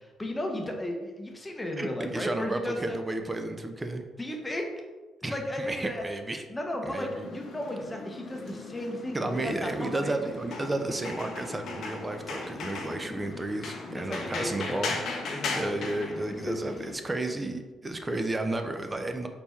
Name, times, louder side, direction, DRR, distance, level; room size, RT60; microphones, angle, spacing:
voice 1, 0.0-3.0 4.2-4.7 5.3-6.0 6.5-10.1 13.9-14.8 15.3-15.8, left 1 dB, 15° left, 2 dB, 0.7 m, -34 dB
voice 2, 1.8-4.0 5.2-6.4 6.8-7.3 9.1-15.0 15.5-19.3, right 2 dB, 20° right, 6 dB, 0.4 m, -32 dB
sound 1, 6.9-16.9, left 3 dB, 70° left, 0.6 m, -38 dB
4.2 x 3.4 x 3.0 m, 1.3 s
cardioid pair, 90°, 0 cm